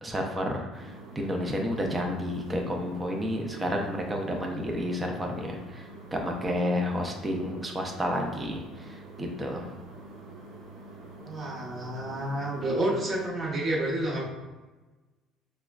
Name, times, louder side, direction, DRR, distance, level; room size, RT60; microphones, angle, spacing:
voice 1, 0.0-9.7, equal, 10° right, 1 dB, 0.4 m, -31 dB
sound 1, 0.7-13.3, right 2 dB, 65° right, 0.9 m, -46 dB
voice 2, 11.2-14.3, right 1 dB, 35° right, -3 dB, 0.9 m, -29 dB
4.9 x 2.1 x 2.3 m, 1.2 s
cardioid pair, 155°, 0 cm